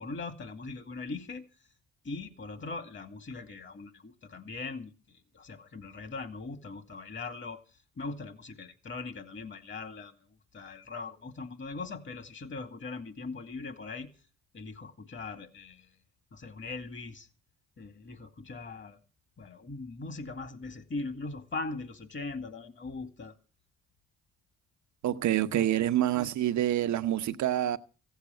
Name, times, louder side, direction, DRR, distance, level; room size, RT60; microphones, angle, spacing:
voice 1, 0.0-1.4 2.0-7.6 8.0-10.1 10.5-14.1 14.5-15.9 16.3-17.3 17.8-19.0 19.4-23.3 25.5-25.7 26.2-26.3, left 3 dB, 40° left, 2.3 m, -40 dB
voice 2, 25.0-27.8, right 12 dB, 70° right, 1.0 m, -27 dB
15.5 x 8.2 x 7.7 m
cardioid pair, 90°, 30 cm